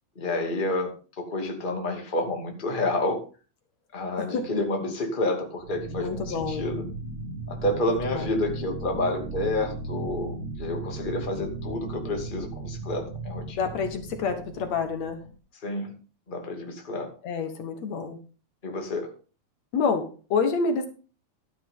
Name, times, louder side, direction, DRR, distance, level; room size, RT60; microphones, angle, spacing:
voice 1, 0.2-3.2 3.9-6.8 7.5-13.6 15.6-15.9 16.3-17.1 18.6-19.1, left 2 dB, 15° left, 2 dB, 2.3 m, -29 dB
voice 2, 4.2-4.6 5.9-6.7 7.9-8.3 13.5-15.2 17.2-18.2 19.7-20.9, left 5 dB, 70° left, 7 dB, 2.6 m, -28 dB
sound 1, 5.6-15.4, right 3 dB, 70° right, 2.8 m, -36 dB
12.5 x 11.0 x 3.8 m, 0.35 s
omnidirectional pair, 3.4 m